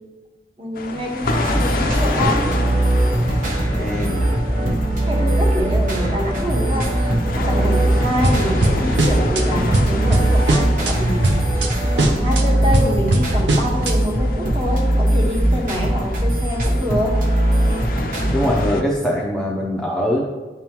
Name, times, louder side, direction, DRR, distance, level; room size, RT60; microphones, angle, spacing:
voice 1, 0.6-2.5 5.1-11.3 11.9-17.1, equal, 30° right, -3 dB, 1.3 m, -26 dB
sound 1, 0.8-18.8, left 3 dB, 50° left, 0.5 m, -31 dB
sound 2, 1.2-18.7, right 1 dB, 50° right, 1.0 m, -20 dB
voice 2, 3.7-4.3 7.5-7.7 18.3-20.2, equal, 5° left, -4 dB, 0.6 m, -22 dB
sound 3, 8.2-9.4 9.7-10.9 11.2-11.7 12.0-13.9, right 1 dB, 75° right, 0.8 m, -19 dB
10.5 x 3.6 x 3.0 m, 1.2 s
head